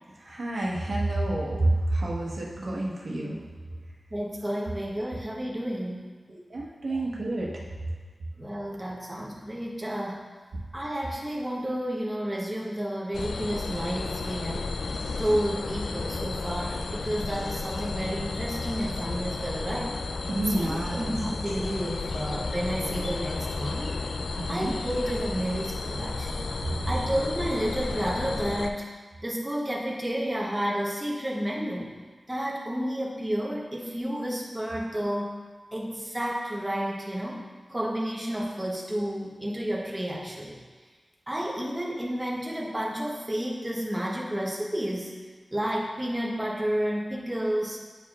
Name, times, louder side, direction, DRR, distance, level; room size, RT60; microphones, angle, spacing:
voice 1, 0.2-3.4 6.3-7.6 20.3-21.1 24.4-24.7 26.6-26.7, right 2 dB, 65° right, -4 dB, 1.2 m, -29 dB
voice 2, 4.1-6.1 6.9-7.0 8.4-10.2 10.7-14.7 15.2-20.0 20.5-24.0 24.5-26.4 26.9-28.9 29.2-31.9 32.3-35.4 35.7-40.6 41.3-45.2 45.5-47.8, equal, 15° right, -3 dB, 0.9 m, -31 dB
sound 1, 13.1-28.7, left 3 dB, 80° left, 0.3 m, -33 dB
8.6 x 4.8 x 2.4 m, 1.5 s
wide cardioid pair, 70°, 0 cm